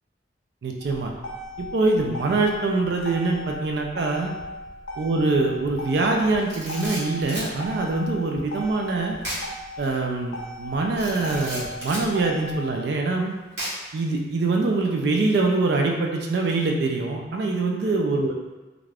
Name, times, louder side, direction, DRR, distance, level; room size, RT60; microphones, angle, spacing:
voice 1, 0.6-1.1 1.6-4.3 5.0-9.2 9.8-13.3 13.9-18.3, right 3 dB, 60° right, 1 dB, 0.3 m, -24 dB
Motor vehicle (road), 0.8-12.8, left 1 dB, 75° left, 0.5 m, -37 dB
Camera, 6.4-7.5 9.2-9.5 9.8-9.9 10.9-12.1 13.6-14.0, right 1 dB, 75° right, 1.1 m, -33 dB
2.4 x 2.2 x 3.3 m, 1.2 s
head